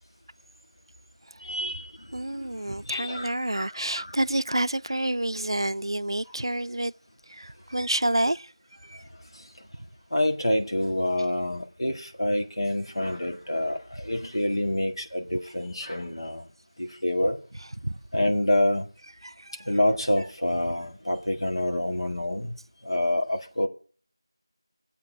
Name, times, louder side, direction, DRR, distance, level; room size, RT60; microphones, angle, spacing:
voice 1, 1.4-3.7 4.0-4.2 9.3-9.5 10.1-16.5 16.8-17.4 18.1-18.9 19.6-22.6 22.8-23.7, left 1 dB, 70° left, 1.9 m, -27 dB
voice 2, 2.1-6.9 7.3-9.0 17.2-17.3 17.8-18.0 19.2-19.7 20.6-20.7, right 1 dB, 70° right, 0.4 m, -29 dB
14.0 x 8.4 x 4.7 m
figure-of-eight pair, 180°, 3 cm